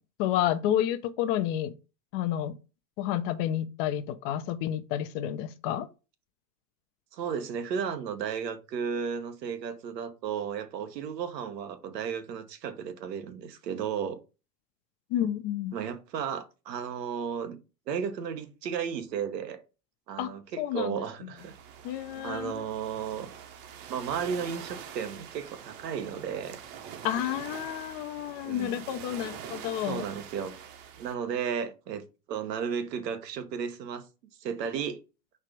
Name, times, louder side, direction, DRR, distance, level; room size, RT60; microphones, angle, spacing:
voice 1, 0.2-1.7 2.1-2.5 3.0-5.9 15.1-15.7 20.2-20.3 20.6-21.0 21.8-22.7 27.0-30.0, left 11 dB, 40° left, 0.4 m, -30 dB
voice 2, 7.1-14.2 15.7-17.6 17.9-19.6 20.1-21.5 22.2-23.3 23.9-26.6 28.4-28.8 29.9-30.5 31.0-34.1 34.4-35.0, right 7 dB, 85° right, 1.0 m, -34 dB
sound 1, 21.4-31.1, right 8 dB, 45° right, 0.9 m, -44 dB
4.5 x 2.5 x 4.6 m
hypercardioid pair, 115°, 48 cm